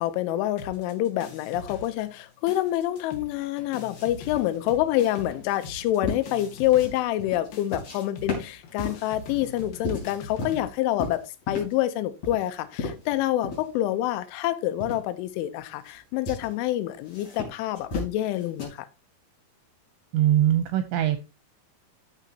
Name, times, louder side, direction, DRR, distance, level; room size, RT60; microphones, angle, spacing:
voice 1, 0.0-18.9, left 13 dB, 85° left, 3.3 m, -27 dB
sound 1, 0.6-2.2 2.5-10.7, left 3 dB, 60° left, 2.9 m, -43 dB
sound 2, 3.9-8.0 8.3-10.7 11.0-11.8 12.2-13.7 14.1-14.2 14.8-15.1 15.6-15.9 16.3-16.5 17.1-18.7, left 3 dB, 35° left, 4.1 m, -35 dB
voice 2, 20.1-21.2, right 12 dB, 80° right, 2.8 m, -21 dB
14.0 x 6.3 x 2.8 m
omnidirectional pair, 5.5 m